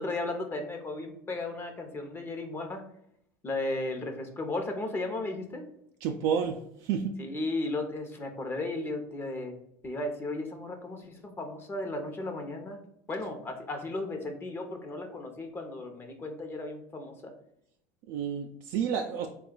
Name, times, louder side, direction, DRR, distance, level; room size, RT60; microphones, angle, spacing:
voice 1, 0.0-2.8 3.4-5.6 7.2-9.6 9.8-12.8 13.1-17.3, left 2 dB, 25° left, 4 dB, 0.8 m, -35 dB
voice 2, 6.0-7.1 18.1-19.3, right 7 dB, 65° right, 2 dB, 0.4 m, -30 dB
3.7 x 2.3 x 3.8 m, 0.75 s
supercardioid pair, 105°, 9 cm